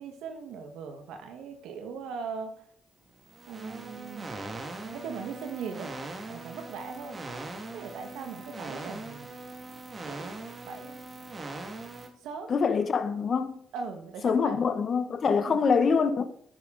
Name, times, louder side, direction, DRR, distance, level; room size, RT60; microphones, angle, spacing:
voice 1, 0.0-2.5 3.5-4.3 4.8-5.9 6.3-7.2 7.7-9.3 10.0-10.4 10.6-11.1 12.2-12.5 13.7-14.6 15.5-15.6, right 5 dB, 90° right, 1.5 m, -39 dB
sound 1, 3.2-12.1, right 3 dB, 35° right, 2.0 m, -41 dB
voice 2, 12.5-13.6 14.2-16.2, left 5 dB, 50° left, 0.9 m, -25 dB
10.5 x 9.2 x 3.9 m
cardioid pair, 90°, 0 cm